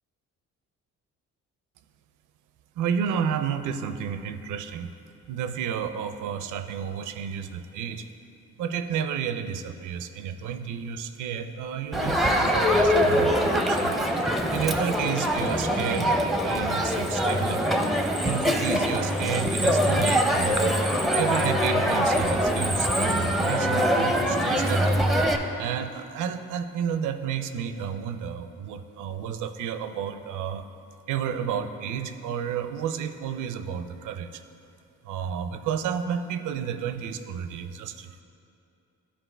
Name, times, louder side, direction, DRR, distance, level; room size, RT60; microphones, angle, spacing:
voice 1, 2.8-4.9 5.3-8.1 8.6-13.9 14.3-17.8 18.2-20.8 21.1-24.9 25.6-30.7 31.1-34.4 35.0-38.2, right 8 dB, 80° right, 10 dB, 0.5 m, -31 dB
Crowd, 11.9-25.4, equal, ahead, 0.5 m, -23 dB
11.5 x 4.6 x 3.3 m, 2.8 s
cardioid pair, 90°, 30 cm